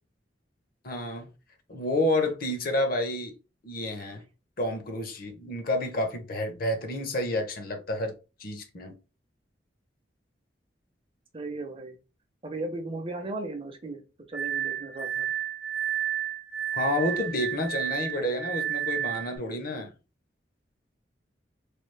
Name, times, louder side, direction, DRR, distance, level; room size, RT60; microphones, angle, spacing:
voice 1, 0.8-1.3 1.7-3.3 3.6-4.2 4.6-8.1 8.4-8.9 16.8-19.9, left 1 dB, 55° left, 0.8 m, -29 dB
voice 2, 11.3-12.0 12.4-14.0 14.3-15.3, right 2 dB, 30° right, 0.6 m, -36 dB
Glass, 14.3-19.4, right 10 dB, 75° left, 1.5 m, -31 dB
3.3 x 2.4 x 3.2 m
head